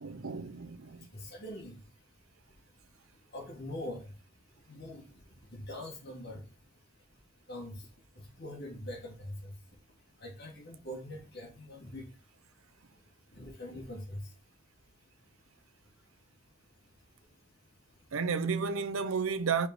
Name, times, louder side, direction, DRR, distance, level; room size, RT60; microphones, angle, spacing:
voice 1, 0.0-1.1 18.1-19.7, right 5 dB, 70° right, 0.7 m, -32 dB
voice 2, 1.1-1.8 3.3-4.1 4.7-5.0 5.5-6.4 7.5-7.8 8.4-9.5 10.2-12.0 13.3-14.2, left 1 dB, 45° left, 2.5 m, -42 dB
5.1 x 4.6 x 4.7 m
head